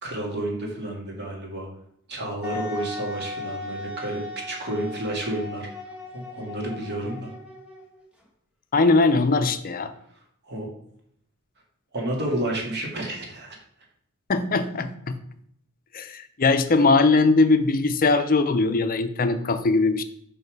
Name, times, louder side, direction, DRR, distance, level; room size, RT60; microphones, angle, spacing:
voice 1, 0.0-1.7 2.1-4.2 4.5-5.7 6.1-7.3 10.4-10.7 11.9-13.6, right 1 dB, 50° right, 0 dB, 1.9 m, -30 dB
Wind instrument woodwind instrument, 2.4-8.0, left 2 dB, 5° right, 1.0 m, -37 dB
voice 2, 8.7-9.9 14.3-15.2 15.9-20.0, left 3 dB, 40° left, 9 dB, 0.5 m, -20 dB
5.7 x 5.4 x 4.6 m, 0.69 s
head